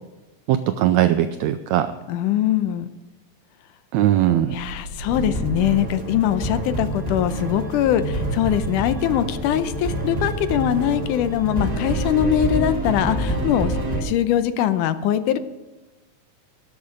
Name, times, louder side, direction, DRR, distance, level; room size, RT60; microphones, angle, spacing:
voice 1, 0.5-1.9 3.9-4.6, right 12 dB, 80° right, 9 dB, 1.6 m, -19 dB
voice 2, 2.1-2.9 4.5-15.4, left 11 dB, 85° left, 11 dB, 2.2 m, -22 dB
sound 1, 4.5-12.3, left 1 dB, 50° left, 1.6 m, -37 dB
sound 2, 5.1-14.0, right 1 dB, 45° right, 0.5 m, -27 dB
19.5 x 7.0 x 5.0 m, 1.2 s
omnidirectional pair, 3.7 m